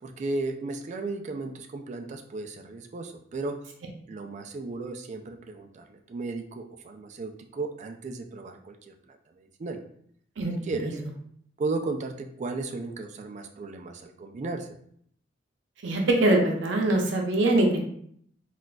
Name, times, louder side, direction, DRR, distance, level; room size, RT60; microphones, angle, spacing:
voice 1, 0.0-3.6 4.1-9.8 10.6-11.0 11.6-14.7, right 3 dB, 40° right, 5 dB, 0.3 m, -35 dB
voice 2, 10.4-11.0 15.8-17.8, right 1 dB, 80° right, 2 dB, 0.6 m, -23 dB
4.0 x 2.4 x 2.3 m, 0.66 s
head